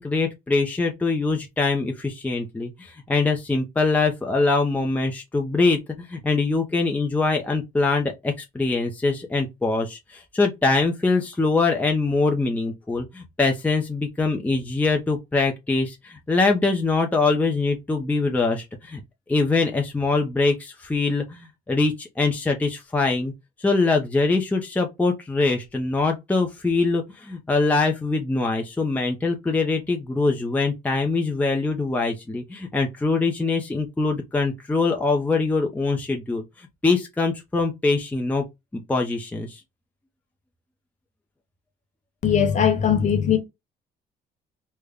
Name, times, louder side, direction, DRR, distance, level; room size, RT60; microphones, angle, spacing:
voice 1, 0.0-19.0 19.3-23.3 23.6-38.4 38.7-39.6, left 3 dB, 10° left, 0.6 m, -23 dB
voice 2, 42.2-43.4, left 8 dB, 45° left, 1.1 m, -19 dB
3.4 x 2.1 x 3.6 m
cardioid pair, 110°, 17 cm